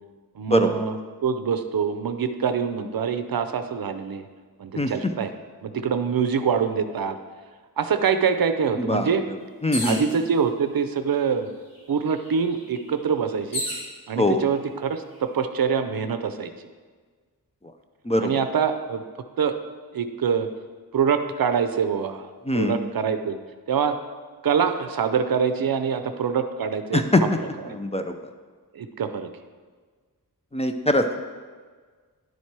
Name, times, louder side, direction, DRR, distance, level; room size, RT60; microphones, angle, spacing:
voice 1, 0.4-1.0 1.2-4.2 4.6-5.3 5.6-7.2 7.8-9.2 9.8-11.5 11.9-13.6 14.1-16.5 18.2-19.0 19.4-19.5 19.9-20.5 20.9-22.3 22.5-23.4 23.7-24.0 24.4-27.3 27.6-27.8 28.7-29.3, right 6 dB, 65° right, 9 dB, 0.6 m, -25 dB
voice 2, 9.6-10.0 14.2-14.4 18.1-18.3 22.5-22.8 26.9-27.2 27.8-28.1 30.5-31.0, left 1 dB, 15° left, 6 dB, 0.4 m, -21 dB
sound 1, 9.7-10.1 11.1-11.2 11.5-13.9 14.6-15.1, left 1 dB, 60° left, 2.6 m, -33 dB
10.5 x 4.3 x 4.6 m, 1.5 s
wide cardioid pair, 80°, 38 cm